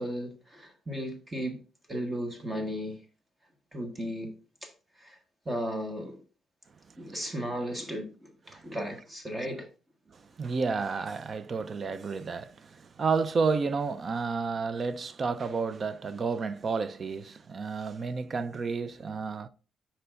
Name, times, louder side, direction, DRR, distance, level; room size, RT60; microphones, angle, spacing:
voice 1, 0.0-1.6 1.9-3.0 3.7-4.3 4.6-4.7 5.0-5.2 5.4-6.2 7.0-9.7, equal, 20° right, 1.3 m, -35 dB
voice 2, 10.1-19.5, right 4 dB, 45° right, 0.5 m, -31 dB
9.4 x 4.5 x 2.5 m
cardioid pair, 90°, 0 cm